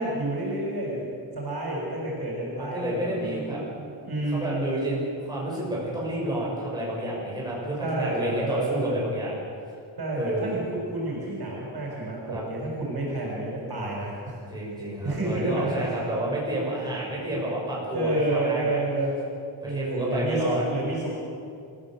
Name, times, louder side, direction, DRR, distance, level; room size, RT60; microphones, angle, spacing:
voice 1, 0.0-4.7 7.8-9.0 10.0-10.6 10.9-14.4 15.0-15.9 17.9-19.2 19.6-21.1, right 2 dB, 50° right, -3 dB, 6.7 m, -29 dB
voice 2, 2.5-3.6 4.3-9.4 10.1-10.6 12.3-12.4 14.5-18.8 19.6-20.6, right 1 dB, 10° right, -6 dB, 6.4 m, -30 dB
28.0 x 15.5 x 7.8 m, 2.4 s
wide cardioid pair, 155°, 49 cm